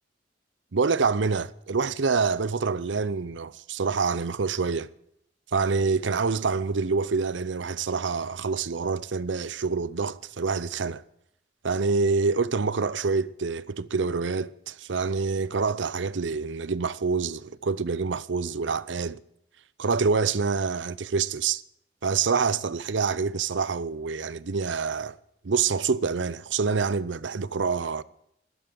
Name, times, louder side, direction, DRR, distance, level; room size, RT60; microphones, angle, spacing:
voice 1, 0.7-4.9 5.5-11.0 11.6-19.2 19.8-21.6 22.0-25.2 25.4-28.0, right 4 dB, 80° right, 0.7 m, -26 dB
13.0 x 12.5 x 7.7 m
head